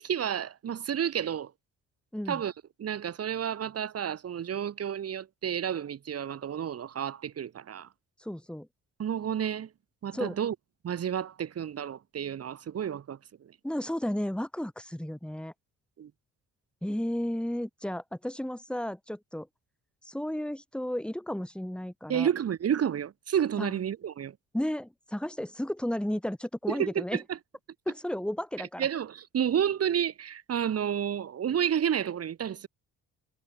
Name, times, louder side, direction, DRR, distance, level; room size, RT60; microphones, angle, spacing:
voice 1, 0.0-1.5 2.3-2.5 2.8-7.9 9.0-9.7 10.0-10.5 10.8-13.2 16.0-16.1 22.1-24.3 26.7-27.2 28.8-32.7, right 9 dB, 55° right, 2.0 m, -30 dB
voice 2, 8.2-8.7 10.1-10.4 13.6-15.5 16.8-19.5 20.0-22.3 23.6-23.8 24.5-27.2 27.9-28.9, left 1 dB, 5° left, 5.8 m, -33 dB
cardioid pair, 90°, 30 cm